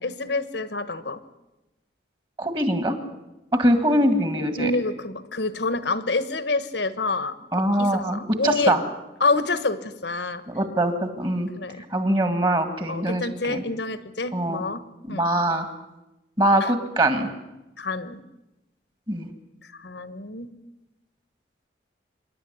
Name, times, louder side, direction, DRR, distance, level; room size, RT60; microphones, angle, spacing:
voice 1, 0.0-1.2 4.6-7.4 7.8-8.8 9.2-10.4 11.6-11.8 12.9-14.8 15.1-15.2 16.6-16.7 17.8-18.2 19.8-20.5, left 3 dB, 65° left, 13 dB, 1.3 m, -27 dB
voice 2, 2.4-3.0 3.6-4.7 7.5-8.8 10.5-11.5 11.9-13.6 14.3-14.6 15.1-15.7 16.4-17.3 19.1-19.3, right 1 dB, 25° right, 8 dB, 1.9 m, -23 dB
26.0 x 11.5 x 9.9 m, 0.97 s
head